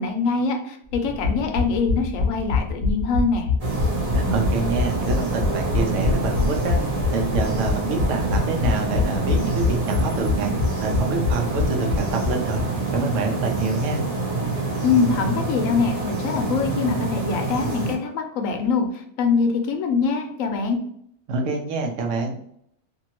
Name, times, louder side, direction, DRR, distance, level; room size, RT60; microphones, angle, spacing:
voice 1, 0.0-3.5 14.8-20.8, left 4 dB, 70° left, 4 dB, 0.9 m, -23 dB
sound 1, 0.9-12.6 12.9-13.0 13.2-13.3, left 4 dB, 50° left, 0.6 m, -24 dB
sound 2, 3.6-17.9, right 2 dB, 40° right, 0.6 m, -26 dB
voice 2, 4.1-6.8 7.1-10.5 10.8-12.6 12.9-14.0 21.3-22.4, right 4 dB, 65° right, 2 dB, 0.9 m, -26 dB
2.7 x 2.6 x 2.8 m, 0.70 s
omnidirectional pair, 1.5 m